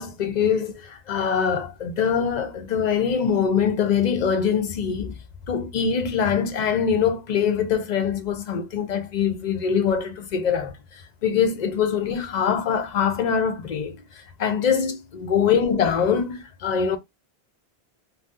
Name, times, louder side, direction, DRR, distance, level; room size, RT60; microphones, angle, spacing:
voice 1, 0.0-5.2 5.5-14.0 14.4-17.0, left 7 dB, 50° left, 0.6 m, -23 dB
2.6 x 2.0 x 3.5 m
omnidirectional pair, 1.0 m